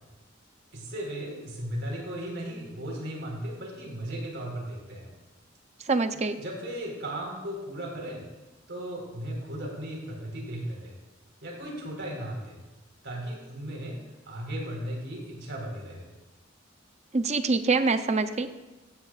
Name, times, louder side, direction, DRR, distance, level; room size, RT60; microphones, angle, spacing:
voice 1, 0.7-5.1 6.4-8.2 8.7-10.9 11.4-12.6 13.0-14.0 14.3-16.1, right 1 dB, 65° right, -1 dB, 4.5 m, -36 dB
voice 2, 5.9-6.4 17.1-18.6, right 3 dB, 35° right, 9 dB, 0.7 m, -25 dB
16.5 x 15.5 x 2.5 m, 1.1 s
head